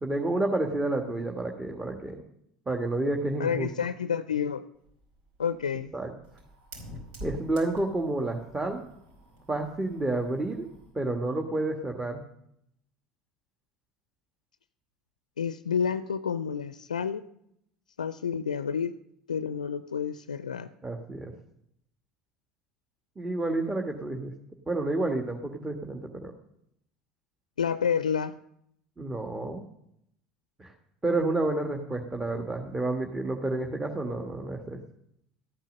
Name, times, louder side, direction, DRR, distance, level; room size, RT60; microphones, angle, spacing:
voice 1, 0.0-2.2 2.7-3.7 5.9-6.1 7.2-8.8 9.5-10.6 10.9-12.2 20.8-21.3 23.2-24.3 24.7-26.3 29.0-29.6 30.6-30.7 31.0-34.8, right 2 dB, 15° right, 2 dB, 1.5 m, -30 dB
voice 2, 3.4-4.6 5.4-5.9 15.4-17.2 18.0-18.9 19.3-20.7 27.6-28.3, left 7 dB, 80° left, 14 dB, 0.4 m, -29 dB
Fire, 4.7-11.0, equal, 65° right, 5.0 m, -47 dB
14.0 x 9.0 x 6.4 m, 0.76 s
figure-of-eight pair, 65°, 4 cm